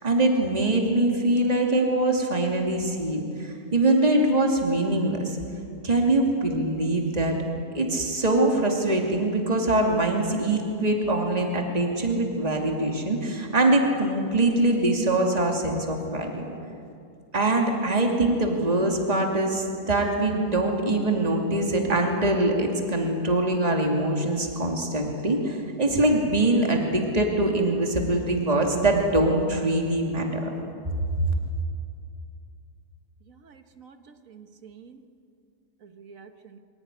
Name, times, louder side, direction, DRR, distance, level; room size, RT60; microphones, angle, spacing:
voice 1, 0.0-5.4 5.8-7.4 7.7-16.4 17.3-30.5, right 2 dB, 25° right, 1 dB, 2.6 m, -23 dB
voice 2, 33.3-35.0 35.8-36.6, right 6 dB, 60° right, 8 dB, 1.7 m, -49 dB
24.5 x 16.5 x 9.8 m, 2.4 s
omnidirectional pair, 1.7 m